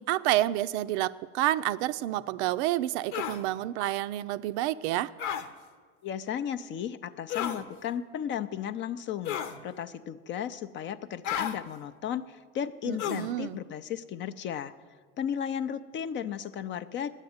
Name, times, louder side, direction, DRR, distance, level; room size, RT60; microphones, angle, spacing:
voice 1, 0.0-5.1 12.8-13.6, right 14 dB, 70° right, 14 dB, 0.5 m, -29 dB
sound 1, 3.1-3.4 5.2-5.5 7.3-7.6 9.2-9.6 11.2-11.6 13.0-13.3, left 9 dB, 70° left, 1.0 m, -32 dB
voice 2, 6.0-14.7 15.2-17.1, left 9 dB, 35° left, 12 dB, 0.4 m, -35 dB
9.9 x 8.2 x 9.4 m, 1.5 s
supercardioid pair, 125°, 35 cm